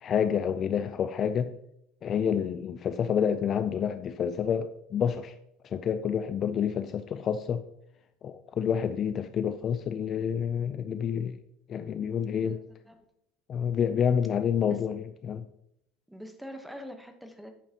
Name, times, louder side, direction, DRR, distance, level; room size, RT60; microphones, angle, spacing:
voice 1, 0.0-1.5 2.0-5.3 5.6-7.6 8.2-11.4 11.7-12.6 13.5-15.4, left 8 dB, 30° left, 0.4 m, -28 dB
voice 2, 12.3-13.0 14.7-14.8 16.1-17.5, equal, 5° right, 1.0 m, -44 dB
10.5 x 8.5 x 2.9 m
supercardioid pair, 145°, 0 cm